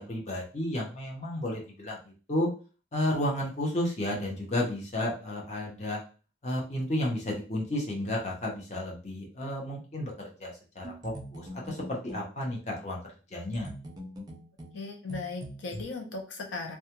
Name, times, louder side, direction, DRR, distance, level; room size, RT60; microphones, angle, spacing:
voice 1, 0.0-2.5 2.9-6.0 6.4-13.0 13.3-13.7, left 1 dB, 35° left, -1 dB, 0.7 m, -32 dB
sound 1, 10.8-12.3 13.5-15.8, equal, 20° right, 0.5 m, -42 dB
voice 2, 14.7-16.8, left 3 dB, 85° left, 3 dB, 0.5 m, -37 dB
2.3 x 2.1 x 2.8 m, 0.35 s
head